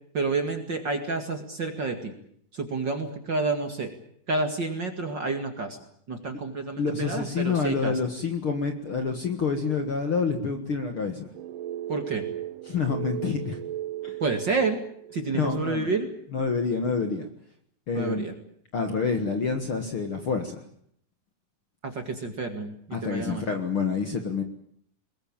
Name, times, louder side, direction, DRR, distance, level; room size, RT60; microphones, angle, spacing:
voice 1, 0.1-2.1 2.5-3.9 4.3-5.8 6.1-7.9 11.9-12.2 14.2-14.8 15.1-16.1 17.9-18.3 21.8-23.4, right 3 dB, 35° right, 6 dB, 2.2 m, -29 dB
voice 2, 6.8-11.3 12.7-13.6 14.0-14.2 15.3-15.9 16.3-17.3 17.9-18.3 18.7-20.6 22.9-24.4, left 5 dB, 45° left, 6 dB, 2.0 m, -28 dB
sound 1, 11.3-15.5, right 13 dB, 70° right, 2.8 m, -36 dB
22.0 x 21.5 x 8.8 m, 0.67 s
omnidirectional pair, 4.1 m